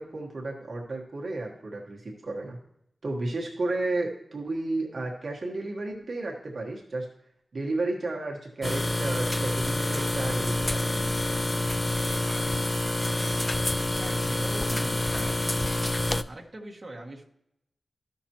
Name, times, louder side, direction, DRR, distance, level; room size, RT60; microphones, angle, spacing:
voice 1, 0.0-2.6 3.0-7.1 7.5-11.0, right 2 dB, 55° right, -1 dB, 1.3 m, -32 dB
sound 1, 8.6-16.2, left 1 dB, 20° left, 0.3 m, -27 dB
sound 2, 9.9-10.6 11.0-15.8, right 1 dB, 10° right, 3.9 m, -46 dB
voice 2, 14.0-15.6 16.2-17.2, right 1 dB, 30° right, -3 dB, 1.6 m, -41 dB
14.0 x 5.9 x 2.9 m, 0.80 s
wide cardioid pair, 125°, 0 cm